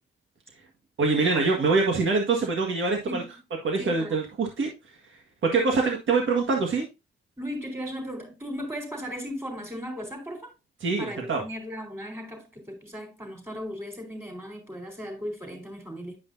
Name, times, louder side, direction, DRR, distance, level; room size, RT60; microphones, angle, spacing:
voice 1, 1.0-3.2 3.6-4.7 5.4-6.8 10.8-11.4, right 4 dB, 80° right, 1.8 m, -24 dB
voice 2, 3.8-4.2 7.4-10.5 11.0-16.2, equal, 10° right, 4.1 m, -36 dB
10.5 x 5.3 x 2.7 m
cardioid pair, 80°, 20 cm